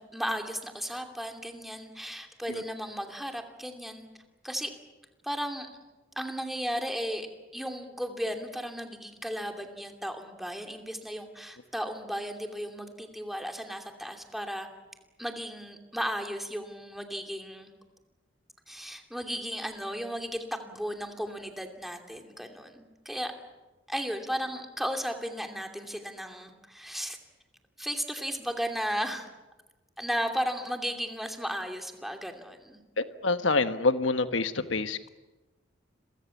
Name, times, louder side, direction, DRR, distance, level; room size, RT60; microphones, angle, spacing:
voice 1, 0.0-4.1 4.4-4.7 5.2-5.7 6.2-7.3 7.5-14.7 15.2-17.7 18.7-23.3 23.9-27.2 27.8-29.3 30.0-32.8, equal, ahead, 4 dB, 2.8 m, -35 dB
voice 2, 33.0-35.1, left 3 dB, 90° left, 10 dB, 1.2 m, -27 dB
30.0 x 23.5 x 7.2 m, 1.1 s
head